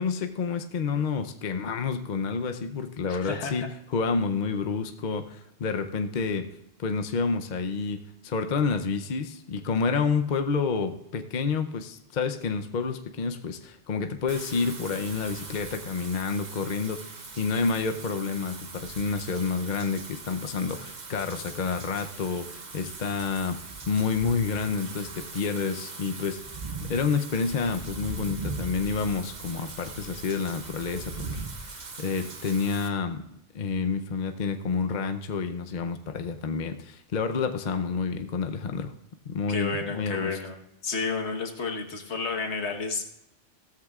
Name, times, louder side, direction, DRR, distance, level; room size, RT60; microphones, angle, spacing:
voice 1, 0.0-6.5 6.8-23.6 23.9-26.4 26.9-33.2 33.5-38.9 39.3-40.4, left 5 dB, 45° left, 6 dB, 0.7 m, -29 dB
voice 2, 3.1-3.7 39.5-40.6 40.8-43.1, left 4 dB, 70° left, 4 dB, 1.6 m, -31 dB
Wind / Rain, 14.3-32.9, right 3 dB, 40° right, 1.1 m, -40 dB
16.0 x 13.5 x 2.4 m, 0.85 s
omnidirectional pair, 1.2 m